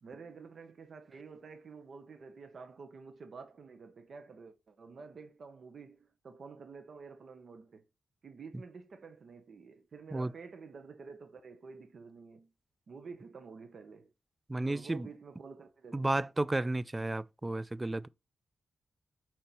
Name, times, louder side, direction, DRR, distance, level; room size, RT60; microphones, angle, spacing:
voice 1, 0.0-7.8 8.2-12.5 12.9-14.1 14.6-16.2, right 5 dB, 60° right, 0.8 m, -50 dB
voice 2, 14.5-15.1 15.9-18.1, right 2 dB, 15° right, 0.3 m, -32 dB
4.4 x 4.4 x 5.2 m
wide cardioid pair, 105°, 0 cm